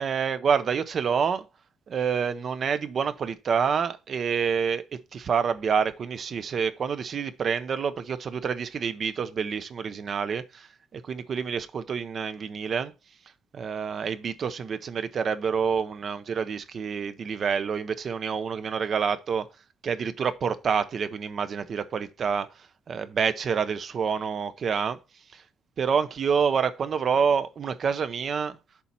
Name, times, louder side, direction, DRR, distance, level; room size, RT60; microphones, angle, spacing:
voice 1, 0.0-1.5 1.9-12.9 13.5-19.5 19.8-22.5 22.9-25.0 25.3-25.4 25.8-28.6, right 6 dB, 35° right, 0.6 m, -27 dB
6.9 x 4.2 x 5.6 m
cardioid pair, 175°, 0 cm